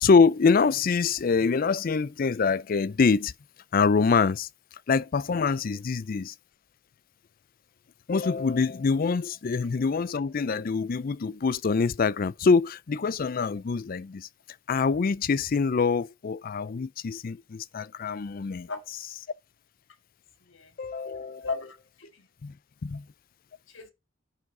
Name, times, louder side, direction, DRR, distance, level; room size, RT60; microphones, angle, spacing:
voice 1, 0.0-3.3 3.7-4.5 4.9-6.3 8.1-14.3 14.7-18.7 20.8-21.4 22.4-22.5 22.8-23.0, left 5 dB, 45° left, 0.4 m, -25 dB
voice 2, 20.4-20.8 21.4-22.3 23.7-23.9, left 4 dB, 75° left, 2.0 m, -36 dB
11.0 x 7.3 x 3.8 m
head